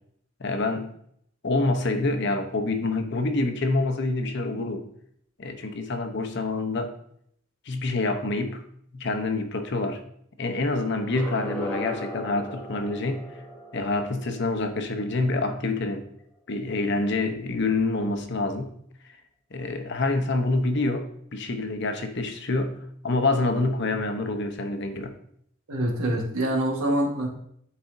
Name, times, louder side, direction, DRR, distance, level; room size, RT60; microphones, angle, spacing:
voice 1, 0.4-0.9 1.4-4.9 5.4-7.0 7.7-8.6 8.9-10.0 10.4-13.3 13.7-16.0 16.5-18.8 19.5-25.1, left 2 dB, 55° left, 6 dB, 0.8 m, -27 dB
sound 1, 11.0-15.9, left 1 dB, 5° left, 0.9 m, -38 dB
voice 2, 25.7-27.3, right 1 dB, 90° right, 1 dB, 1.5 m, -25 dB
11.0 x 4.1 x 2.6 m, 0.68 s
head